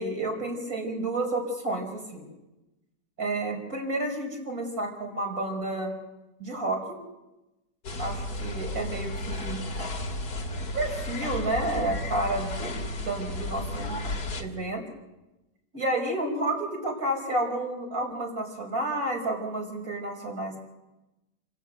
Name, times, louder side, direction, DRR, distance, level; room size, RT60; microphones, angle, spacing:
voice 1, 0.0-2.3 3.2-5.9 6.4-7.0 8.0-9.6 10.7-14.0 14.4-14.8 15.7-20.6, right 1 dB, 50° right, 1 dB, 6.3 m, -30 dB
sound 1, 7.8-14.4, left 1 dB, 60° left, 2.6 m, -33 dB
29.5 x 16.0 x 8.0 m, 1.0 s
omnidirectional pair, 2.0 m